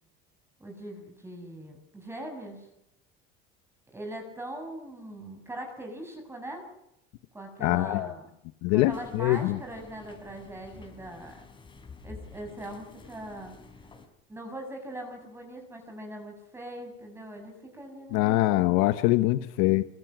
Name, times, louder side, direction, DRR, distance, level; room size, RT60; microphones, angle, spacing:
voice 1, 0.6-2.7 3.9-6.6 7.3-8.3 8.7-11.4 12.0-13.6 14.3-18.7, right 1 dB, 10° right, 3 dB, 6.4 m, -41 dB
voice 2, 7.6-8.1 8.6-9.6 18.1-19.8, left 18 dB, 80° left, 11 dB, 1.2 m, -24 dB
sound 1, 8.8-14.1, left 4 dB, 20° left, 5.8 m, -50 dB
25.0 x 24.0 x 6.2 m, 0.83 s
cardioid pair, 140°, 21 cm